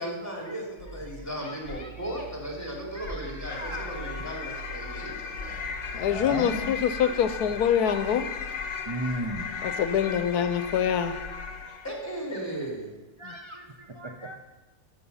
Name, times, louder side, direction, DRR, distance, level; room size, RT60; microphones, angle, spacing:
voice 1, 0.0-5.7 11.8-12.9, right 1 dB, 10° left, -2 dB, 2.9 m, -36 dB
sound 1, 0.8-8.0 8.6-9.7 10.4-12.6, right 2 dB, 75° right, 5.2 m, -46 dB
voice 2, 1.4-2.2 2.9-4.0 5.6-7.2 7.9-8.1 8.9-9.8 11.0-11.2 11.6-11.7 13.2-14.4, right 1 dB, 35° right, 2 dB, 0.5 m, -37 dB
sound 2, 3.4-12.0, left 5 dB, 55° left, 1.2 m, -36 dB
voice 3, 5.9-8.3 9.6-11.1 13.2-13.3, left 8 dB, 80° left, 10 dB, 1.1 m, -25 dB
13.0 x 7.5 x 5.5 m, 1.1 s
omnidirectional pair, 1.6 m